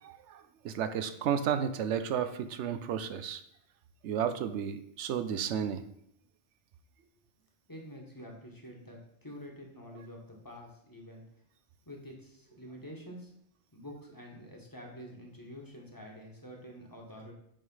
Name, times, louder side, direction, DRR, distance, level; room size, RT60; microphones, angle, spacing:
voice 1, 0.0-3.4 4.0-5.8, right 8 dB, 85° right, 10 dB, 0.9 m, -32 dB
voice 2, 7.7-11.2 11.9-13.3 13.7-17.3, equal, 20° left, -1 dB, 1.4 m, -47 dB
8.9 x 3.3 x 5.5 m, 0.72 s
omnidirectional pair, 1.2 m